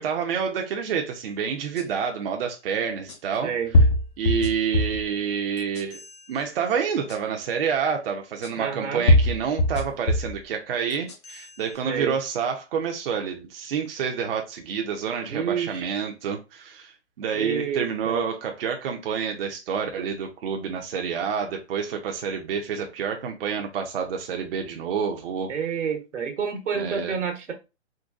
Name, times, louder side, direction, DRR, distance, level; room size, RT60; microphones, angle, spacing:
voice 1, 0.0-3.5 4.2-6.0 6.3-25.5 26.8-27.2, right 7 dB, 55° right, 0.6 m, -28 dB
sound 1, 1.8-1.9 3.1-3.2 3.7-5.1 5.6-6.1 7.1-7.2 8.4-8.5 9.1-10.4 10.9-11.5, left 1 dB, 25° left, 0.4 m, -21 dB
voice 2, 3.4-3.7 8.6-9.1 11.8-12.2 15.3-15.9 17.3-18.2 25.5-27.5, right 6 dB, 85° right, 1.2 m, -29 dB
3.8 x 2.2 x 2.4 m
hypercardioid pair, 140°, 35 cm